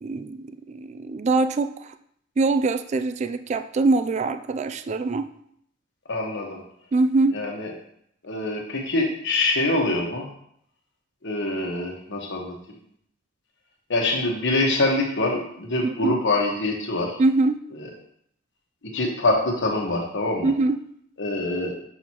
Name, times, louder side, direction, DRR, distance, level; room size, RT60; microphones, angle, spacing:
voice 1, 0.0-1.9 2.4-5.3 6.9-7.4 15.8-16.2 17.2-17.6 20.4-20.8, right 3 dB, 35° right, 9 dB, 0.3 m, -23 dB
voice 2, 6.1-6.6 7.3-7.7 8.2-10.3 11.2-12.5 13.9-17.2 18.9-20.5 21.2-21.7, left 2 dB, 60° left, 0 dB, 1.3 m, -24 dB
7.0 x 6.2 x 2.9 m, 0.69 s
head